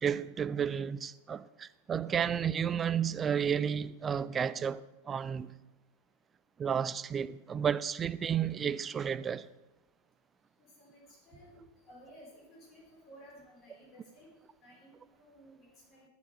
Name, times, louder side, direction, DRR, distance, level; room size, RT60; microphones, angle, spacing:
voice 1, 0.0-5.5 6.6-9.5, right 8 dB, 20° right, 0.3 m, -32 dB
voice 2, 10.6-14.3 14.6-16.1, equal, 35° left, 3.7 m, -56 dB
10.0 x 6.8 x 4.7 m
figure-of-eight pair, 90°, 0 cm